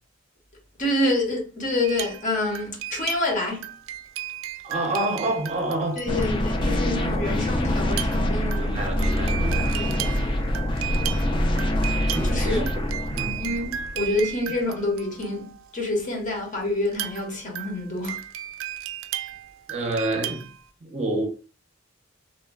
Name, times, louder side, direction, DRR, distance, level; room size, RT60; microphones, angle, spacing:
voice 1, 0.8-3.7 6.0-8.8 9.7-10.3 12.2-12.7 13.4-18.2, left 2 dB, 40° left, 0.9 m, -27 dB
sound 1, 1.8-6.6 7.8-15.7 16.8-20.7, right 12 dB, 85° right, 0.3 m, -35 dB
voice 2, 4.6-6.0 6.9-7.2 8.6-9.8 12.1-12.7 13.1-13.4 19.7-20.4 20.8-21.3, right 2 dB, 35° right, 0.6 m, -28 dB
sound 2, 6.1-14.2, left 1 dB, 25° left, 0.3 m, -25 dB
3.0 x 2.1 x 2.3 m
head